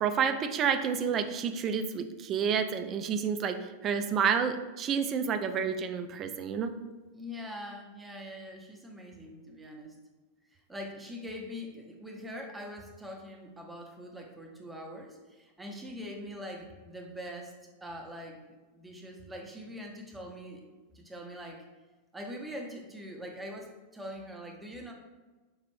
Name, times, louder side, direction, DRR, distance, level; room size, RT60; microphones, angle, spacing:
voice 1, 0.0-6.7, right 7 dB, 30° right, 8 dB, 0.3 m, -29 dB
voice 2, 7.1-10.0 10.5-17.5 17.8-18.4 18.7-20.6 20.9-21.6 22.1-24.9, equal, 10° right, 1 dB, 0.8 m, -43 dB
5.4 x 2.4 x 3.3 m, 1.2 s
figure-of-eight pair, 90°, 0 cm